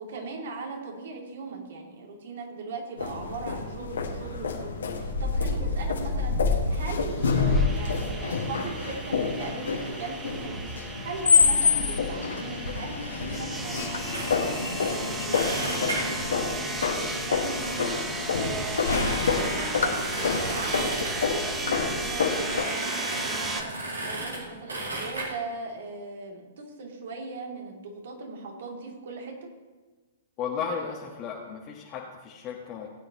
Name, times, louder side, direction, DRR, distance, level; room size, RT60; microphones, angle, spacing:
voice 1, 0.0-14.1 14.4-18.0 18.3-23.6 24.0-29.3, right 3 dB, 55° right, 0 dB, 3.0 m, -39 dB
sound 1, 3.0-22.6, left 5 dB, 70° left, 1.9 m, -27 dB
sound 2, 7.0-23.6, right 3 dB, 15° right, 1.2 m, -36 dB
sound 3, 14.1-14.3 14.8-14.9 15.3-16.3 17.2-17.4 17.8-17.9 18.3-18.4 18.6-21.3 22.0-24.4 24.7-25.3, right 2 dB, 75° right, 4.1 m, -34 dB
voice 2, 30.4-32.9, left 6 dB, 30° left, -3 dB, 1.6 m, -34 dB
19.0 x 10.0 x 3.1 m, 1.3 s
figure-of-eight pair, 110°, 0 cm